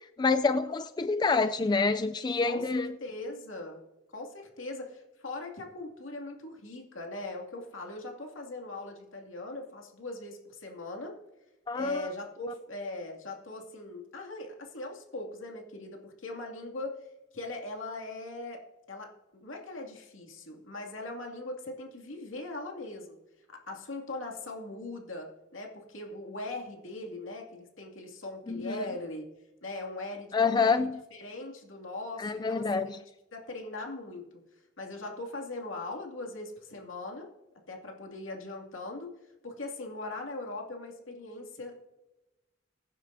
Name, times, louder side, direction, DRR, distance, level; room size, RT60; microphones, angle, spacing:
voice 1, 0.2-2.9 11.7-12.1 28.5-28.9 30.3-30.9 32.2-33.0, left 4 dB, 20° left, 0.3 m, -27 dB
voice 2, 2.4-3.8 4.1-11.2 11.7-17.0 17.3-18.6 18.9-23.2 23.5-29.2 29.6-30.8 31.1-34.3 34.8-37.3 37.7-39.1 39.4-41.8, left 2 dB, 90° left, 2.3 m, -40 dB
22.0 x 9.9 x 2.7 m
head